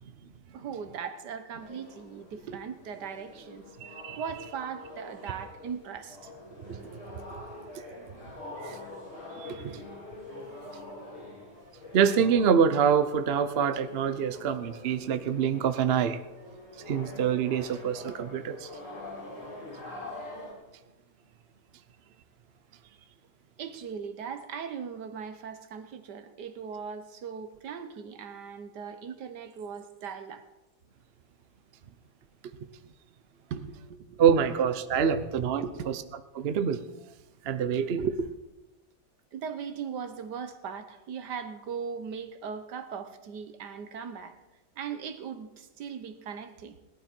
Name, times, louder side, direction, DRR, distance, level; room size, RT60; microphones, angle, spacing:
voice 1, 0.5-6.3 23.6-30.4 33.5-34.2 35.1-35.3 35.6-35.9 39.3-44.4 44.8-46.8, right 6 dB, 70° right, 1.6 m, -39 dB
sound 1, 1.6-20.5, left 2 dB, 45° left, 3.5 m, -45 dB
voice 2, 3.8-4.2 6.7-6.8 8.6-8.8 9.4-9.8 11.9-16.2 16.9-18.7 34.2-35.6 36.3-36.8 37.4-38.3, right 7 dB, 55° right, 0.7 m, -26 dB
18.0 x 11.5 x 4.5 m
omnidirectional pair, 1.9 m